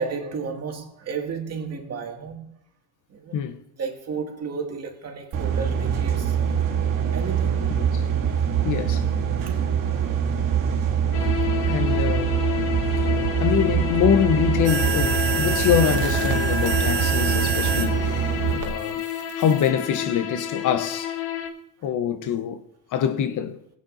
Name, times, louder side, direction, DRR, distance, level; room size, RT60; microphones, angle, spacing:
voice 1, 0.0-2.5 3.1-3.4 3.8-6.4 7.1-7.6 9.5-9.7, right 5 dB, 45° right, 2.0 m, -32 dB
sound 1, 5.3-18.6, right 8 dB, 65° right, 2.2 m, -24 dB
voice 2, 8.6-9.0 11.7-12.4 13.2-18.3 18.6-19.0 19.4-21.1 21.8-22.6 22.9-23.6, left 8 dB, 55° left, 0.9 m, -24 dB
sound 2, 11.1-21.5, left 11 dB, 80° left, 1.3 m, -30 dB
sound 3, 14.6-17.9 18.6-19.7, right 4 dB, 85° right, 1.4 m, -27 dB
16.0 x 8.5 x 2.6 m
supercardioid pair, 80°, 36 cm